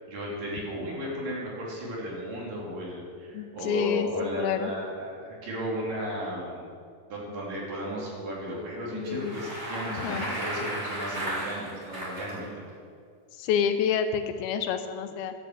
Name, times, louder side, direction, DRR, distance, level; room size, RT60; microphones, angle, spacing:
voice 1, 0.1-6.6 7.1-12.6, equal, 65° right, -5 dB, 4.5 m, -35 dB
voice 2, 3.3-4.7 8.9-9.3 9.9-10.3 13.4-15.3, left 7 dB, 85° left, 8 dB, 2.7 m, -28 dB
Bicycle, 9.0-12.3, equal, 15° right, 3.1 m, -34 dB
12.0 x 7.6 x 7.8 m, 2.2 s
omnidirectional pair, 4.3 m